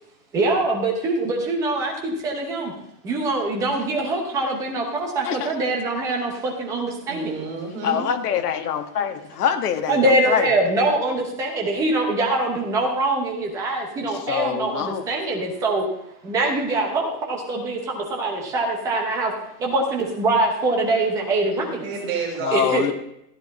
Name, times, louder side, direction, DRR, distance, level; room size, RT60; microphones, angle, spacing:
voice 1, 0.3-2.7 3.0-7.3 9.9-15.8 16.2-19.3 19.6-21.8 22.5-22.9, right 2 dB, 5° right, 1 dB, 0.8 m, -23 dB
voice 2, 7.1-8.0 21.5-22.8, right 4 dB, 35° right, 0 dB, 5.3 m, -30 dB
voice 3, 7.8-10.5 14.1-15.0 22.4-22.9, left 8 dB, 65° left, 6 dB, 1.6 m, -25 dB
14.5 x 9.6 x 4.1 m, 0.77 s
supercardioid pair, 175°, 50 cm